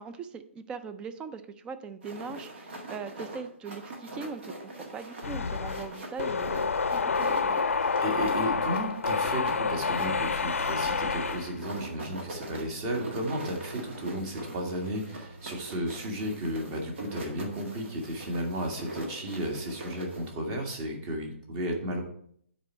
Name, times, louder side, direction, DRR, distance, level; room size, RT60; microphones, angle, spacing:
voice 1, 0.0-4.5 4.9-7.6, right 5 dB, 15° right, 11 dB, 0.4 m, -40 dB
sound 1, 2.0-20.3, right 1 dB, 60° right, 1.8 m, -42 dB
sound 2, 5.2-11.6, left 5 dB, 85° left, 0.6 m, -28 dB
voice 2, 8.0-22.0, equal, 30° right, 2 dB, 1.8 m, -33 dB
sound 3, 10.4-15.6, right 1 dB, 80° right, 2.3 m, -50 dB
9.4 x 4.5 x 4.5 m, 0.65 s
hypercardioid pair, 145°, 7 cm